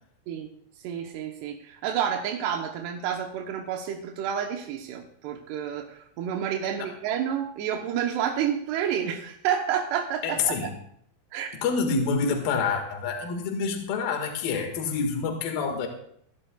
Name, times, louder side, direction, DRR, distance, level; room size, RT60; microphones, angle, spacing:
voice 1, 0.8-10.5 11.3-11.5, right 9 dB, 75° right, 2 dB, 2.6 m, -29 dB
voice 2, 10.2-10.7 11.6-15.9, left 5 dB, 60° left, 3 dB, 3.0 m, -27 dB
24.0 x 12.5 x 2.4 m, 0.67 s
omnidirectional pair, 5.8 m